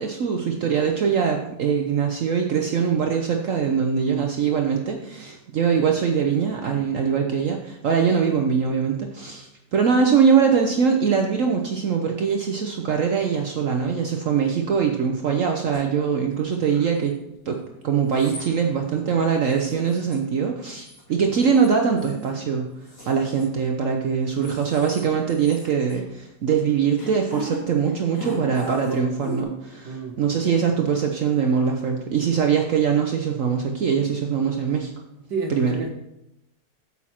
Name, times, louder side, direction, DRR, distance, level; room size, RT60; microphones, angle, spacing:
voice 1, 0.0-17.1 17.5-17.6 17.8-22.7 23.1-34.9 35.5-35.7, right 6 dB, 60° right, 3 dB, 1.0 m, -22 dB
sound 1, 15.7-15.8 16.5-17.1 18.0-18.5 18.9-19.0 19.4-20.2 20.4-21.1 21.4-22.3 22.9-23.9 24.3-25.0 25.3-26.0 27.0-27.6 27.8-29.4, left 1 dB, 70° left, 4.6 m, -37 dB
voice 2, 29.8-30.2 35.3-35.9, right 3 dB, 85° right, 2 dB, 1.7 m, -29 dB
8.9 x 7.2 x 4.3 m, 0.85 s
omnidirectional pair, 1.8 m